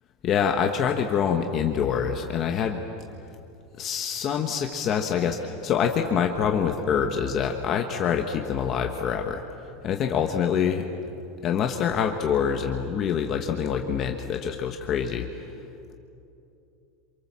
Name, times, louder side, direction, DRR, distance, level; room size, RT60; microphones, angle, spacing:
voice 1, 0.2-2.8 3.8-9.4 9.8-10.8 11.4-15.4, left 7 dB, 25° left, 4 dB, 1.2 m, -25 dB
28.5 x 27.0 x 7.5 m, 2.7 s
supercardioid pair, 180°, 0 cm